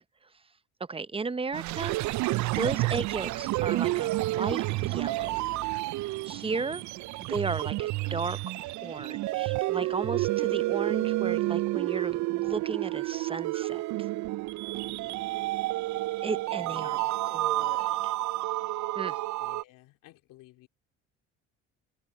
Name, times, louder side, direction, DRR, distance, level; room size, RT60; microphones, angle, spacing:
voice 1, 0.9-2.0 2.5-5.4 6.3-6.8 7.3-14.1 16.2-18.1 18.9-19.2, right 4 dB, 15° right, 0.8 m, -35 dB
sound 1, 1.5-19.6, right 18 dB, 60° right, 0.5 m, -30 dB
voice 2, 6.6-6.9 14.8-15.5 16.6-17.1 19.4-20.7, left 18 dB, 70° left, 3.4 m, -55 dB
supercardioid pair, 70°, 33 cm